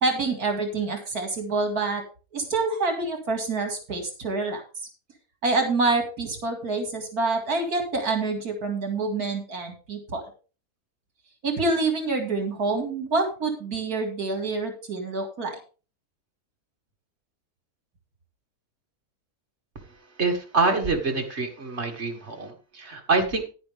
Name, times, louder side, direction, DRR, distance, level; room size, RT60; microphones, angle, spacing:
voice 1, 0.0-2.0 2.3-4.6 5.4-10.2 11.4-15.6, right 3 dB, 70° right, 4 dB, 2.7 m, -27 dB
voice 2, 20.2-23.4, right 3 dB, 45° right, 4 dB, 2.1 m, -25 dB
10.5 x 10.5 x 3.5 m, 0.35 s
omnidirectional pair, 1.7 m